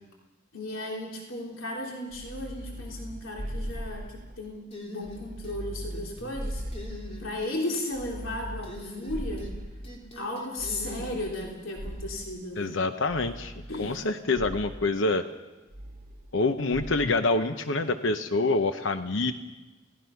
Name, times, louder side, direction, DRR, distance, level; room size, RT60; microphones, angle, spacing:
voice 1, 0.5-6.6 7.2-9.5 10.1-12.8 13.7-14.5, left 1 dB, 85° left, -2 dB, 3.3 m, -35 dB
sound 1, 2.1-4.5 5.0-7.5 7.9-10.1 10.6-12.4 13.1-14.0 14.3-14.8 15.7-16.4 16.7-17.2, equal, 40° right, 1.5 m, -39 dB
sound 2, 4.7-5.6 5.9-6.4 6.7-7.6 8.6-9.6 9.8-11.5, left 1 dB, 30° left, 3.8 m, -42 dB
voice 2, 12.6-13.5 13.8-15.2 16.3-19.3, left 3 dB, 65° left, 9 dB, 0.9 m, -26 dB
30.0 x 18.0 x 5.8 m, 1.2 s
head